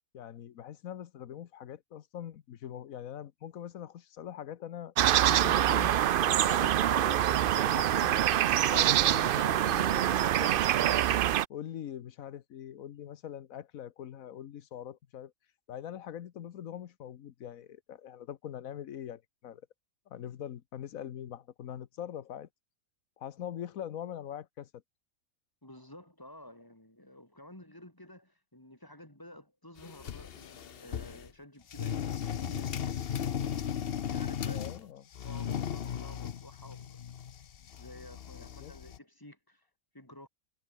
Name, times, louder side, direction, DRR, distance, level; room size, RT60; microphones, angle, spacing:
voice 1, 0.1-4.9 5.3-6.0 6.4-8.2 8.7-11.1 11.5-15.3 15.7-19.6 20.1-22.5 23.2-24.7 34.4-35.0 38.3-38.7, left 10 dB, 85° left, 1.3 m, -43 dB
sound 1, 5.0-11.5, right 11 dB, 65° right, 0.5 m, -25 dB
voice 2, 25.6-32.0 32.3-32.8 33.6-34.9 35.2-37.0 37.8-39.6 39.9-40.3, left 1 dB, 15° left, 4.4 m, -52 dB
sound 2, 29.8-31.3 31.7-34.8 35.1-39.0, left 8 dB, 50° left, 0.9 m, -36 dB
omnidirectional pair, 1.4 m